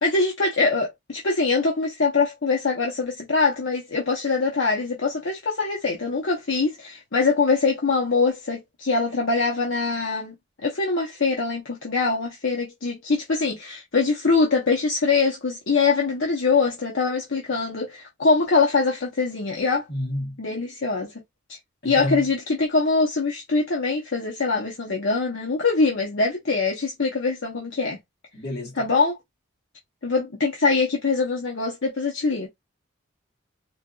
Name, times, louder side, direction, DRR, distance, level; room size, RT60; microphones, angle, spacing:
voice 1, 0.0-10.3 10.6-19.9 20.4-21.1 21.8-28.0 28.7-29.2 30.0-32.5, left 4 dB, 70° left, 0.8 m, -23 dB
voice 2, 19.9-20.4 21.8-22.2 28.3-28.9, left 1 dB, 50° left, 1.4 m, -30 dB
4.2 x 2.3 x 2.4 m
head